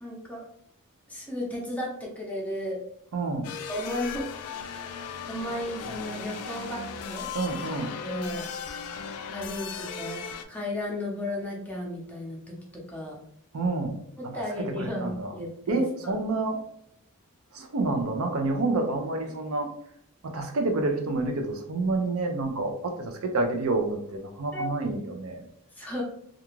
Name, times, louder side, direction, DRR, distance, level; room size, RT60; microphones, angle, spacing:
voice 1, 0.0-0.4 1.1-2.8 3.7-4.2 5.0-7.3 8.0-8.4 9.3-10.2 10.5-13.2 14.2-16.2 24.5-24.7 25.8-26.0, left 1 dB, 5° left, -3 dB, 0.6 m, -34 dB
voice 2, 3.1-3.5 7.3-7.9 13.5-15.3 15.7-16.6 17.5-19.7 20.2-25.4, right 2 dB, 70° right, 4 dB, 0.5 m, -28 dB
sound 1, 3.4-10.4, left 6 dB, 80° left, 0.3 m, -37 dB
2.4 x 2.3 x 3.0 m, 0.72 s
head